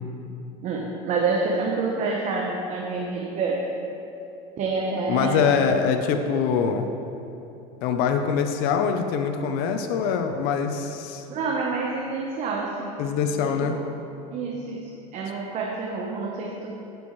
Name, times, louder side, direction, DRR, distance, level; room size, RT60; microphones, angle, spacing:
voice 1, 0.6-3.7 4.6-5.5 11.3-13.0 13.4-13.8 14.3-16.7, right 4 dB, 45° right, -1 dB, 1.0 m, -28 dB
voice 2, 4.9-6.9 7.8-11.2 13.0-13.7, left 6 dB, 65° left, 6 dB, 0.7 m, -24 dB
15.0 x 6.1 x 3.2 m, 2.9 s
supercardioid pair, 115°, 17 cm